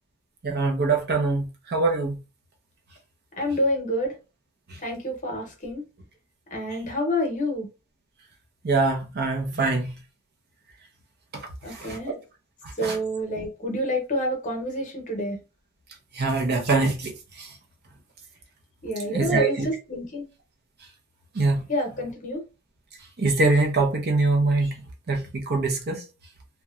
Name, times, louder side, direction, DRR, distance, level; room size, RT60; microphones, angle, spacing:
voice 1, 0.4-2.2 8.6-9.9 11.3-11.4 11.7-12.2 12.6-13.0 16.1-17.5 19.0-19.7 21.3-21.6 23.2-24.8 25.1-26.0, right 3 dB, 45° right, 0.6 m, -24 dB
voice 2, 3.4-4.1 4.8-5.8 6.5-7.7 9.5-9.8 11.6-12.1 12.8-15.4 18.8-20.3 21.7-22.4, equal, 35° left, 0.9 m, -28 dB
2.8 x 2.2 x 2.3 m
head